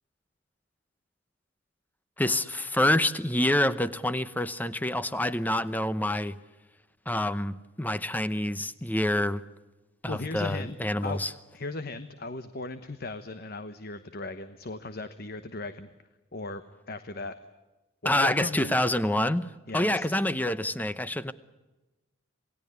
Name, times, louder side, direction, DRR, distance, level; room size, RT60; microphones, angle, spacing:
voice 1, 2.2-6.3 7.1-9.4 10.0-11.3 18.0-21.3, left 1 dB, 10° left, 14 dB, 0.8 m, -27 dB
voice 2, 10.1-10.8 11.0-11.2 11.5-15.9 16.3-16.6 16.9-17.3 18.0-18.7 19.7-20.1, left 3 dB, 50° left, 10 dB, 1.1 m, -37 dB
28.0 x 18.5 x 9.6 m, 1.1 s
head